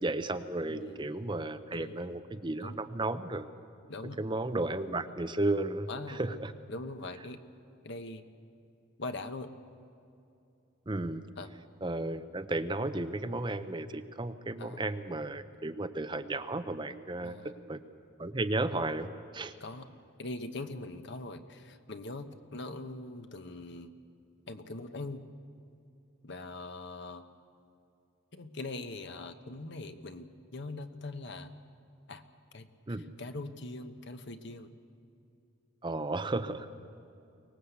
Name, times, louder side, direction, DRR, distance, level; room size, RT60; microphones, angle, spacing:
voice 1, 0.0-3.5 4.2-6.5 10.9-11.2 11.8-17.8 18.2-19.5 32.9-33.1 35.8-36.7, right 2 dB, 25° right, 10 dB, 0.7 m, -34 dB
voice 2, 0.7-1.1 1.7-2.2 2.6-2.8 3.9-4.2 5.9-6.4 6.7-7.4 7.8-8.2 9.0-9.5 11.4-11.5 14.6-14.8 17.2-17.5 19.6-19.8 20.2-23.9 24.5-25.2 26.2-27.2 28.3-31.5 32.1-32.2 32.5-32.7 33.2-34.7, left 2 dB, 60° left, 8 dB, 1.1 m, -42 dB
23.5 x 19.0 x 8.2 m, 2.6 s
head